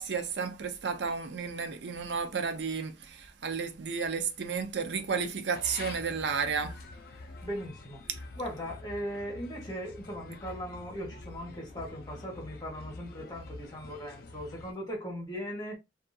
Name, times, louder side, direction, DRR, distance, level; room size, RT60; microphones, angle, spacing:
voice 1, 0.0-6.8, right 5 dB, 65° right, 0.4 m, -32 dB
sound 1, 5.5-14.7, left 3 dB, 55° left, 0.4 m, -46 dB
voice 2, 7.4-8.0 8.4-15.8, equal, 20° left, 1.0 m, -38 dB
2.6 x 2.3 x 2.6 m
head